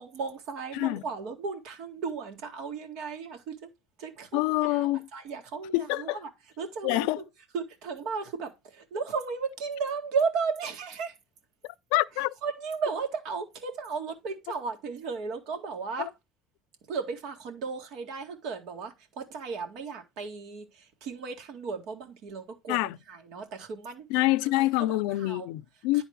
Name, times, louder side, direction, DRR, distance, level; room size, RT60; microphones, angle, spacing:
voice 1, 0.0-3.7 4.0-6.3 6.6-7.2 7.5-11.1 12.4-16.1 16.9-24.1 24.6-25.5, right 5 dB, 55° right, 2.0 m, -35 dB
voice 2, 4.3-5.1 5.7-6.2 6.8-7.2 11.9-12.3 16.0-16.1 22.7-23.0 24.1-26.0, left 18 dB, 85° left, 0.4 m, -26 dB
10.0 x 4.1 x 4.5 m
cardioid pair, 170°, 0 cm